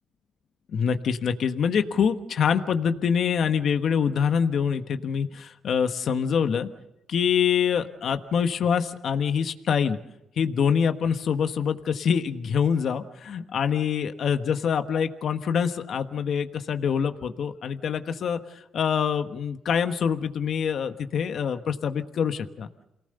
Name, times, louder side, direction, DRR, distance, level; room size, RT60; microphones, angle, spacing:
voice 1, 0.7-6.7 7.1-10.0 10.4-22.7, left 7 dB, 60° left, 8 dB, 1.3 m, -25 dB
28.0 x 18.5 x 6.8 m, 0.86 s
cardioid pair, 90°, 0 cm